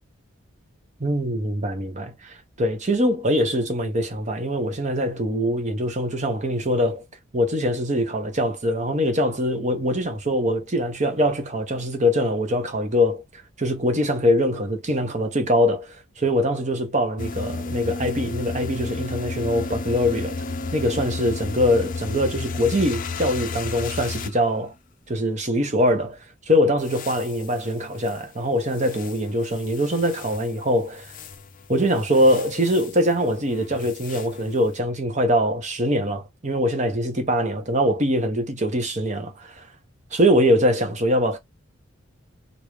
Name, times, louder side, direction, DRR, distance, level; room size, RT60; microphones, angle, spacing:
voice 1, 1.0-7.0 7.3-13.2 13.6-20.4 20.7-24.7 25.1-26.2 26.5-31.1 31.7-39.6 40.1-41.4, equal, 35° right, 1.0 m, -23 dB
sound 1, 17.2-24.4 26.8-28.1 28.7-30.6 31.0-31.4 32.0-33.1 33.5-34.5, left 3 dB, 40° left, 0.5 m, -32 dB
3.1 x 2.7 x 3.1 m
head